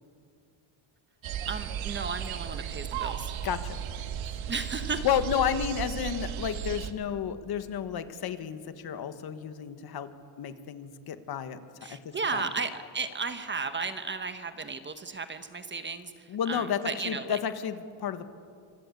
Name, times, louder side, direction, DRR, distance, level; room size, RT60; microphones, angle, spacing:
sound 1, 1.2-6.9, right 9 dB, 70° right, 1.8 m, -35 dB
voice 1, 1.5-3.3 4.5-5.0 11.8-17.4, right 4 dB, 20° right, 9 dB, 1.1 m, -34 dB
voice 2, 3.4-3.8 5.0-10.1 10.4-11.6 11.9-12.4 16.3-18.3, left 8 dB, 50° left, 10 dB, 1.6 m, -31 dB
27.0 x 26.0 x 8.3 m, 2.3 s
cardioid pair, 175°, 49 cm